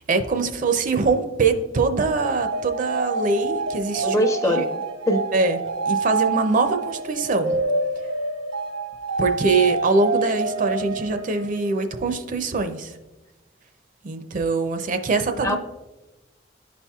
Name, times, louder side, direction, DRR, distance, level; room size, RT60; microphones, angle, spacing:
voice 1, 0.0-4.2 4.4-4.7 5.3-5.6 5.9-7.6 9.2-12.9 14.0-15.6, right 3 dB, 45° right, 8 dB, 0.5 m, -23 dB
sound 1, 2.2-12.0, right 3 dB, 85° right, 1.1 m, -27 dB
voice 2, 4.0-5.2 15.4-15.6, equal, 15° left, 5 dB, 0.5 m, -23 dB
11.0 x 4.3 x 2.3 m, 1.1 s
head